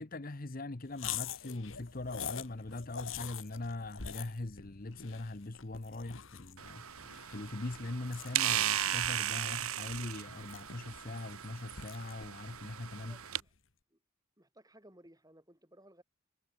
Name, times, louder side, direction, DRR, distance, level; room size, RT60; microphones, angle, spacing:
voice 1, 0.0-13.2, left 2 dB, 40° left, 1.0 m, -41 dB
sound 1, 0.9-13.4, left 8 dB, 65° left, 1.8 m, -46 dB
sound 2, 6.6-13.4, right 11 dB, 90° right, 1.9 m, -36 dB
voice 2, 13.1-13.5 13.9-14.0 14.4-16.0, right 1 dB, 15° right, 6.3 m, -59 dB
head